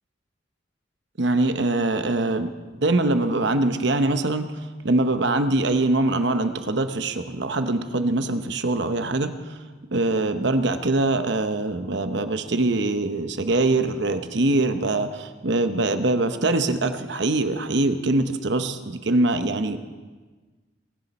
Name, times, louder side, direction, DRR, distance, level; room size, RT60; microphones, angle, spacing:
voice 1, 1.2-2.5 2.8-4.6 4.8-9.6 9.9-19.8, right 2 dB, 60° right, 9 dB, 0.9 m, -23 dB
22.5 x 11.0 x 4.3 m, 1.3 s
head